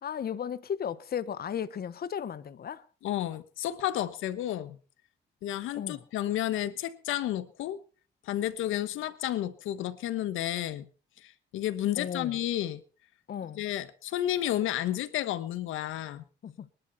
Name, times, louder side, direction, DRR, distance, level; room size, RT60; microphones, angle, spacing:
voice 1, 0.0-2.8 5.7-6.0 12.0-12.4 13.3-13.6 16.4-16.7, left 8 dB, 50° left, 1.2 m, -35 dB
voice 2, 3.0-4.8 5.4-7.8 8.2-10.9 11.2-12.8 13.5-16.2, left 12 dB, 85° left, 1.3 m, -31 dB
24.5 x 11.5 x 4.1 m
cardioid pair, 90°, 20 cm